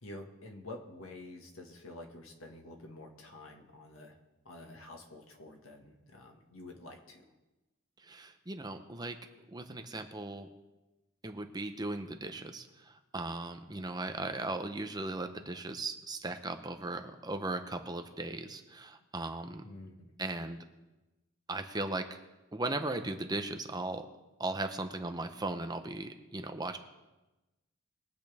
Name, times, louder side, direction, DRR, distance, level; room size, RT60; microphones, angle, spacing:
voice 1, 0.0-4.2 4.5-7.2 19.6-20.1, left 2 dB, 85° left, 2 dB, 1.9 m, -49 dB
voice 2, 8.0-9.2 9.5-10.5 11.2-19.6 20.2-20.6 21.5-22.2 22.5-24.1 24.4-26.8, right 2 dB, 20° right, 6 dB, 0.8 m, -37 dB
22.0 x 8.3 x 3.6 m, 1.1 s
head